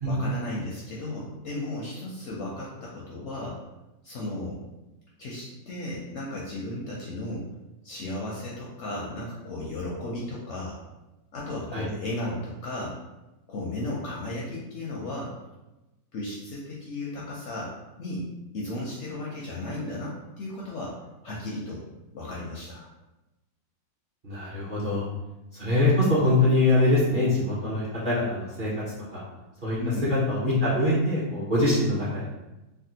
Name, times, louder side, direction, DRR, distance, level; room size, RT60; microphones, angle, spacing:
voice 1, 0.0-3.6 4.0-4.6 5.2-7.4 7.8-10.8 11.3-13.0 13.5-15.3 16.1-18.3 18.5-21.0 21.2-21.8 22.1-22.8 29.8-30.1, left 1 dB, 70° left, -4 dB, 0.7 m, -35 dB
voice 2, 24.2-25.0 25.5-28.8 29.1-29.2 29.6-29.8 30.1-32.3, left 1 dB, 45° right, -9 dB, 0.7 m, -23 dB
3.5 x 2.1 x 2.7 m, 1.0 s
omnidirectional pair, 1.6 m